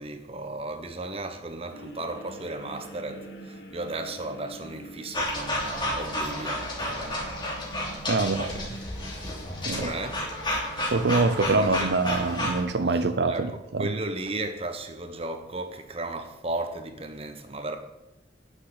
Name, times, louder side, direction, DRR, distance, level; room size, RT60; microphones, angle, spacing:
voice 1, 0.0-7.3 8.2-8.7 9.7-10.2 11.4-11.9 13.3-13.5 13.8-17.8, right 2 dB, 35° right, 1.2 m, -35 dB
sound 1, 1.7-11.6, right 1 dB, 75° left, 2.4 m, -45 dB
sound 2, 5.1-12.6, left 1 dB, 25° left, 3.2 m, -31 dB
voice 2, 8.0-8.5 9.7-9.9 10.9-13.9, right 3 dB, 70° right, 0.6 m, -25 dB
9.7 x 6.5 x 8.7 m
head